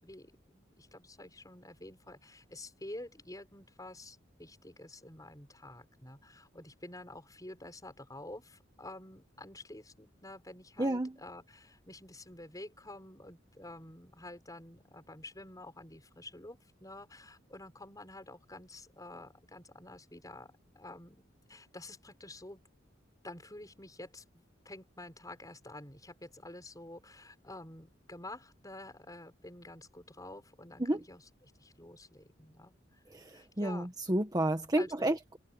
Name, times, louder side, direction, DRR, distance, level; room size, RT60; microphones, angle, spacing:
voice 1, 0.0-22.6 23.2-33.0 33.3-33.9 34.8-35.2, left 1 dB, 20° left, 6.0 m, -49 dB
voice 2, 10.8-11.1 30.8-31.0 33.1-35.4, right 1 dB, 20° right, 1.4 m, -31 dB
open air
head